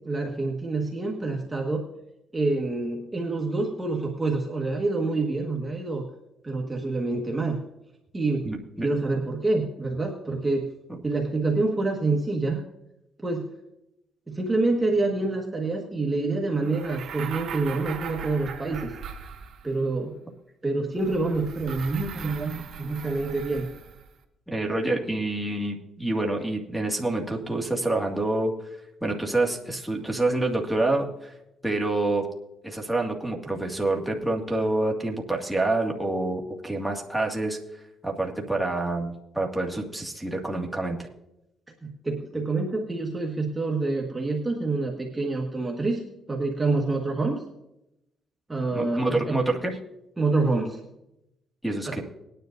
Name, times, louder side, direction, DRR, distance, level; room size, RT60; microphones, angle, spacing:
voice 1, 0.1-1.8 2.3-6.0 6.4-7.6 8.1-8.5 8.8-10.7 11.0-12.6 13.2-13.5 14.3-18.9 19.6-20.1 20.6-23.7 41.8-46.0 46.3-47.4 48.5-49.4 50.2-50.8 51.9-52.0, right 3 dB, 15° right, 0 dB, 1.6 m, -27 dB
voice 2, 8.4-8.9 24.5-28.5 29.0-31.3 31.6-32.3 32.6-37.6 38.0-41.0 48.7-49.8 51.6-52.0, right 2 dB, ahead, -1 dB, 2.0 m, -27 dB
sound 1, 16.6-19.9 21.0-24.1, right 7 dB, 65° right, 1.6 m, -39 dB
20.0 x 10.0 x 2.6 m, 0.87 s
cardioid pair, 90°, 0 cm